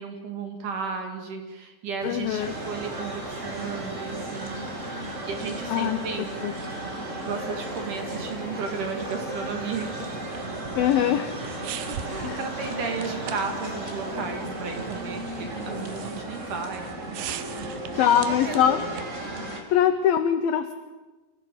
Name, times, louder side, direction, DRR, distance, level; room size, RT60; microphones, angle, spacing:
voice 1, 0.0-6.3 7.2-9.9 11.4-17.2 17.5-18.7, right 5 dB, 55° right, 4 dB, 3.0 m, -34 dB
voice 2, 2.0-2.6 5.7-6.5 10.8-11.4 12.2-12.4 17.9-18.8 19.7-20.7, left 9 dB, 80° left, 10 dB, 2.1 m, -23 dB
sound 1, 2.0-16.1, left 3 dB, 40° left, 2.6 m, -45 dB
sound 2, 2.4-19.6, right 2 dB, 25° right, 1.6 m, -35 dB
sound 3, 9.6-19.2, right 11 dB, 75° right, 2.9 m, -42 dB
27.5 x 15.5 x 7.6 m, 1.2 s
omnidirectional pair, 5.3 m